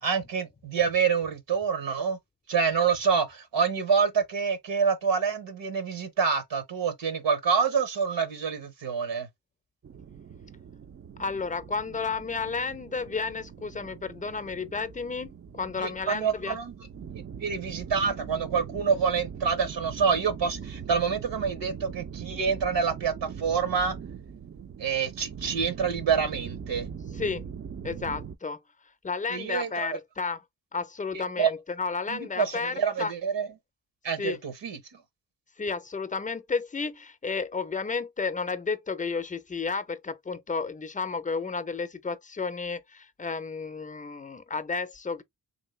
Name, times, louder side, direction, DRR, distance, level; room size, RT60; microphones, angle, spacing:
voice 1, 0.0-2.2 2.5-9.3 15.8-16.7 17.4-23.9 24.8-26.9 29.3-29.9 31.4-31.5 32.1-33.5 34.0-34.8, right 6 dB, 75° right, 0.9 m, -27 dB
sound 1, 9.8-28.3, right 7 dB, 35° right, 0.4 m, -41 dB
voice 2, 11.2-16.6 27.1-27.5 27.8-28.6 29.0-30.4 30.7-33.1 34.2-34.4 35.6-45.2, left 4 dB, 20° left, 0.5 m, -32 dB
3.1 x 2.7 x 3.0 m
cardioid pair, 50°, 44 cm